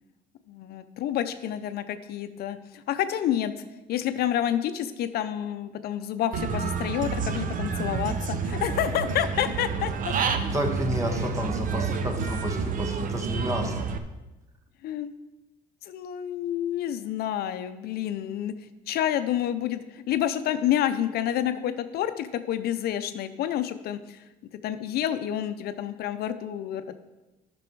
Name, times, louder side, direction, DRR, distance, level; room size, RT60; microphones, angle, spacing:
voice 1, 0.5-3.5 3.9-9.9 14.8-15.1 15.8-18.5 18.9-24.2 24.6-27.0, left 11 dB, 70° left, 10 dB, 0.6 m, -29 dB
Human voice / Bird, 6.3-14.0, right 5 dB, 50° right, 0.7 m, -29 dB
voice 2, 10.5-13.9, equal, 20° right, 4 dB, 1.4 m, -30 dB
10.5 x 6.1 x 4.6 m, 1.1 s
cardioid pair, 110°, 17 cm